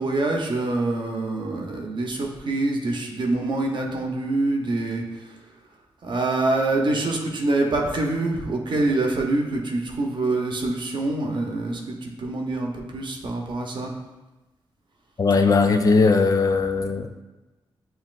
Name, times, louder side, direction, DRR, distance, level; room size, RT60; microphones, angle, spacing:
voice 1, 0.0-5.4 6.0-13.9, right 2 dB, 55° right, 1 dB, 0.7 m, -25 dB
voice 2, 15.2-17.2, left 4 dB, 40° left, 5 dB, 0.5 m, -19 dB
7.3 x 2.7 x 2.4 m, 1.1 s
cardioid pair, 75°, 10 cm